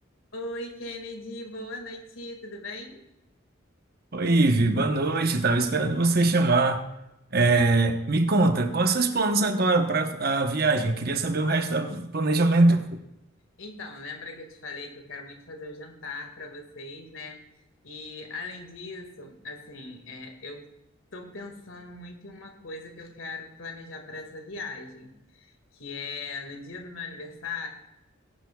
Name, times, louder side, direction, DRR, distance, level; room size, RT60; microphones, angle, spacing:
voice 1, 0.3-3.0 13.6-17.4 17.8-20.7 21.1-27.7, left 3 dB, 70° left, 4 dB, 2.0 m, -39 dB
voice 2, 4.1-6.8 7.3-12.8, right 2 dB, 45° right, 6 dB, 1.0 m, -22 dB
19.5 x 11.0 x 2.3 m, 0.88 s
head